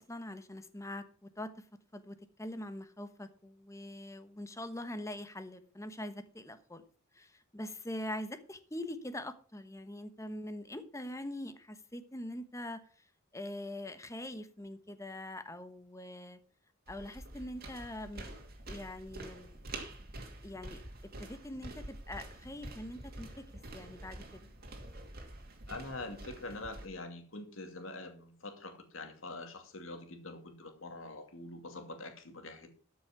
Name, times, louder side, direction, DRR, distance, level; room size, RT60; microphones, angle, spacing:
voice 1, 0.0-1.5 1.9-6.8 7.1-13.0 13.3-16.4 16.9-18.3 18.7-19.6 20.4-20.8 21.2-23.4 23.7-24.5, left 1 dB, 15° left, 10 dB, 1.1 m, -43 dB
sound 1, 16.9-26.9, right 2 dB, 50° right, 2.5 m, -47 dB
voice 2, 25.7-32.7, left 2 dB, 70° left, 6 dB, 2.4 m, -45 dB
13.0 x 6.4 x 5.8 m, 0.41 s
head